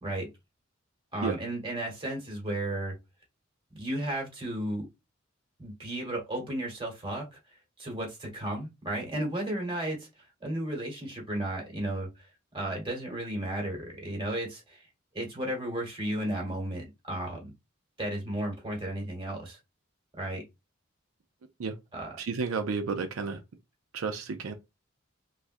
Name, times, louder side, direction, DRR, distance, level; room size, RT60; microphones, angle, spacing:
voice 1, 1.1-2.9 3.7-4.9 5.6-7.4 7.8-12.1 12.5-14.8 15.1-17.5 18.0-19.6 20.2-20.4 21.9-22.2, right 1 dB, 25° right, 1.3 m, -34 dB
voice 2, 22.2-23.4 23.9-24.5, right 4 dB, 85° right, 0.5 m, -31 dB
3.3 x 2.4 x 2.6 m
head